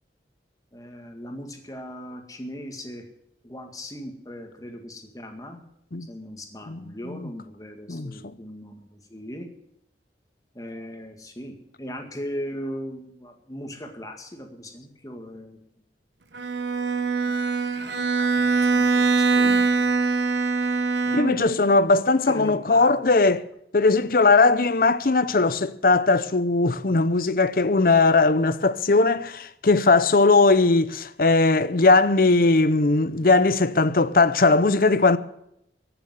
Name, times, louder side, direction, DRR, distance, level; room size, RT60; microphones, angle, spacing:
voice 1, 0.7-3.1 3.4-5.6 6.1-9.5 10.5-15.6 18.2-19.9 21.0-21.5 22.3-23.1, equal, 20° left, 2.0 m, -38 dB
voice 2, 6.7-7.3 7.9-8.4 19.4-19.6 21.1-23.5 23.7-35.2, left 3 dB, 50° left, 0.7 m, -19 dB
Bowed string instrument, 16.3-21.6, right 4 dB, 85° right, 1.2 m, -23 dB
15.0 x 7.0 x 9.5 m
head